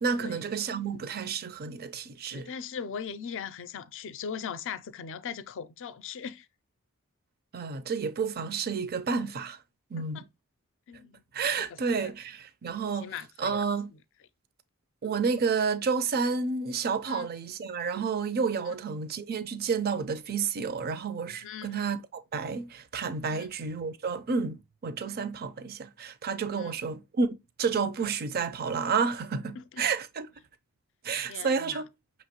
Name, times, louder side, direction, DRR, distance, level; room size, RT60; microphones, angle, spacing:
voice 1, 0.0-2.5 7.5-9.6 9.9-10.2 11.3-13.9 15.0-30.3 31.0-31.9, right 5 dB, 45° right, 0.5 m, -30 dB
voice 2, 2.3-6.5 10.1-10.2 10.9-11.2 11.6-12.1 13.0-13.6 17.1-17.3 21.4-21.7 23.3-23.5 26.5-26.7 29.6-29.9 31.3-31.8, left 7 dB, 60° left, 0.4 m, -39 dB
5.6 x 3.0 x 2.8 m
head